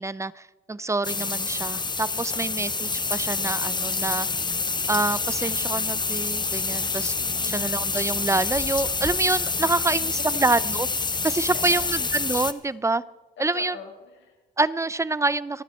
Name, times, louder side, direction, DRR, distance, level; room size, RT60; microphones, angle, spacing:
voice 1, 0.0-4.3 4.9-7.1 7.5-10.8 11.2-13.0 13.4-13.8 14.6-15.6, right 3 dB, 15° right, 18 dB, 0.5 m, -26 dB
sound 1, 1.0-12.5, left 4 dB, 20° left, 0.8 m, -27 dB
voice 2, 2.1-2.7 7.2-7.7 9.7-10.4 11.5-11.8 13.4-14.4, left 5 dB, 65° left, 1 dB, 5.0 m, -43 dB
28.0 x 9.8 x 4.2 m, 1.1 s
cardioid pair, 90°, 20 cm